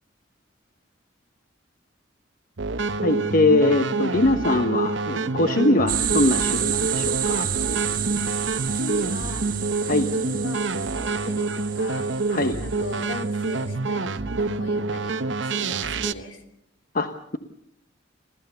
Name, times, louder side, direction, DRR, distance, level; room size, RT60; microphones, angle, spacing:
sound 1, 2.6-16.1, right 3 dB, 70° right, 0.9 m, -27 dB
voice 1, 3.0-7.5 9.9-10.1 12.3-12.6 16.9-17.4, left 2 dB, 45° left, 8 dB, 1.0 m, -22 dB
sound 2, 5.9-13.6, right 11 dB, 45° right, 1.4 m, -30 dB
voice 2, 8.7-9.5 9.8-12.1 12.6-16.4, left 2 dB, 75° left, 6 dB, 3.0 m, -38 dB
29.0 x 14.0 x 6.8 m, 0.73 s
head